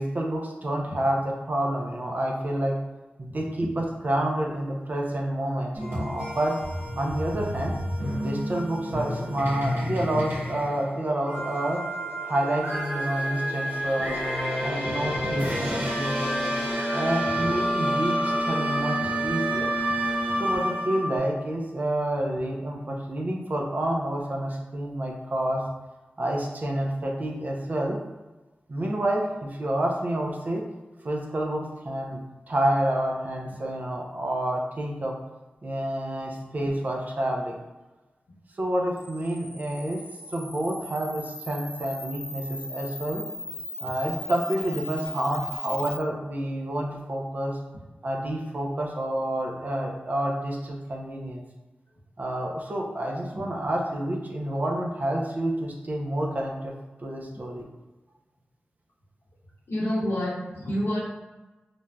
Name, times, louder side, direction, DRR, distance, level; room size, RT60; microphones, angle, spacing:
voice 1, 0.0-2.8 3.2-6.6 7.0-7.8 8.1-11.8 12.2-14.2 14.6-16.5 16.9-19.7 20.4-25.6 26.2-28.0 28.7-30.6 31.0-35.1 35.6-37.5 38.6-43.3 43.8-47.6 48.0-51.4 52.2-56.7 57.0-57.6, right 1 dB, 45° right, 0 dB, 0.5 m, -29 dB
sound 1, 5.8-21.2, equal, 80° right, 1.2 m, -29 dB
Camera, 39.0-46.0, left 1 dB, 15° left, 0.5 m, -38 dB
voice 2, 59.7-61.0, equal, 80° left, -4 dB, 0.8 m, -28 dB
3.2 x 2.5 x 2.2 m, 1.1 s
wide cardioid pair, 75°, 4 cm